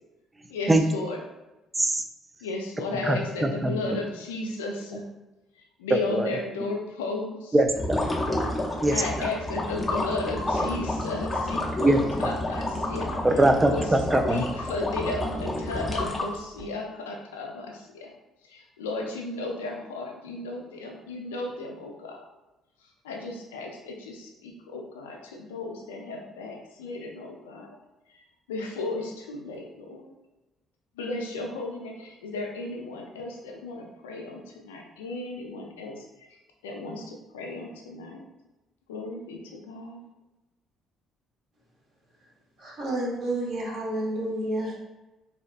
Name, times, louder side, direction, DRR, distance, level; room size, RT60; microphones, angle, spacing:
voice 1, 0.5-1.2 2.4-5.0 5.8-7.5 8.9-13.2 13.7-13.9 14.3-18.1 18.5-22.2 23.0-27.8 28.5-30.1 31.0-36.0 36.6-38.2 38.9-40.0, left 2 dB, 85° left, 1 dB, 0.4 m, -35 dB
voice 2, 3.0-4.0 5.9-6.3 7.5-8.0 8.8-9.3 11.8-12.0 13.2-14.5, right 2 dB, 20° right, 5 dB, 0.3 m, -22 dB
sound 1, 7.7-16.6, left 1 dB, 25° left, 0.6 m, -29 dB
voice 3, 42.6-44.7, right 1 dB, 60° right, -5 dB, 0.9 m, -30 dB
2.7 x 2.2 x 2.5 m, 1.0 s
hypercardioid pair, 50°, 0 cm